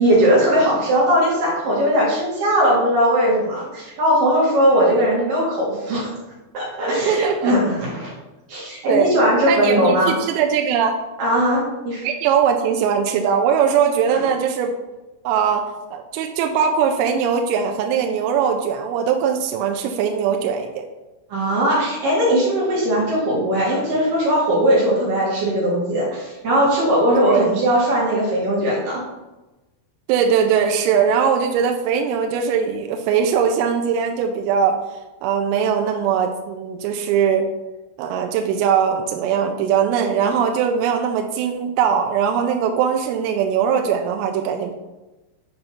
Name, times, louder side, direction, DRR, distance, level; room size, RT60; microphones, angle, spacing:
voice 1, 0.0-6.1 6.5-8.1 8.5-10.2 11.2-12.0 14.1-14.2 21.3-29.0, equal, 65° right, -5 dB, 2.3 m, -19 dB
voice 2, 7.1-7.5 8.9-9.1 9.4-10.9 12.0-14.7 15.2-15.6 15.9-20.9 27.3-27.6 30.1-34.8 35.2-37.5 38.0-44.7, right 7 dB, 85° right, 4 dB, 3.1 m, -20 dB
7.9 x 2.6 x 5.6 m, 1.1 s
omnidirectional pair, 5.9 m